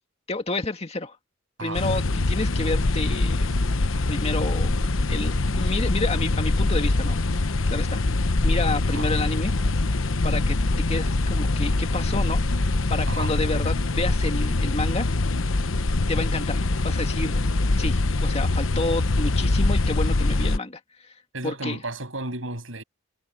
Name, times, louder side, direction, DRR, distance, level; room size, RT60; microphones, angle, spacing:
voice 1, 0.3-1.2 1.6-3.5 4.1-4.7 5.1-7.2 7.7-8.0 8.4-9.5 10.2-10.6 10.9-15.1 16.1-17.5 17.8-21.1 21.4-21.8, left 2 dB, 30° left, 2.1 m, -30 dB
sound 1, 1.7-20.6, left 2 dB, 90° left, 1.0 m, -23 dB
voice 2, 21.3-22.8, right 2 dB, 80° right, 7.8 m, -33 dB
head